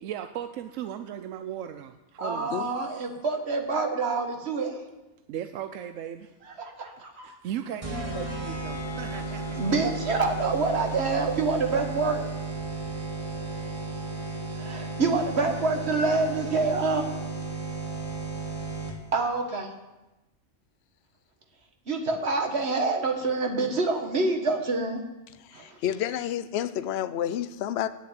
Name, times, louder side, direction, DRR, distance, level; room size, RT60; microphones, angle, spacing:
voice 1, 0.0-2.5 5.3-6.3 7.2-9.6, right 10 dB, 85° right, 8 dB, 1.0 m, -37 dB
voice 2, 2.2-4.8 6.4-7.3 9.6-12.2 14.5-17.0 19.1-19.7 21.9-25.0 25.5-25.8, right 3 dB, 55° right, 3 dB, 1.7 m, -27 dB
sound 1, 7.8-19.2, right 3 dB, 25° right, 1.5 m, -34 dB
voice 3, 25.5-27.9, left 10 dB, 65° left, 13 dB, 0.8 m, -30 dB
8.6 x 7.6 x 9.0 m, 1.0 s
omnidirectional pair, 1.3 m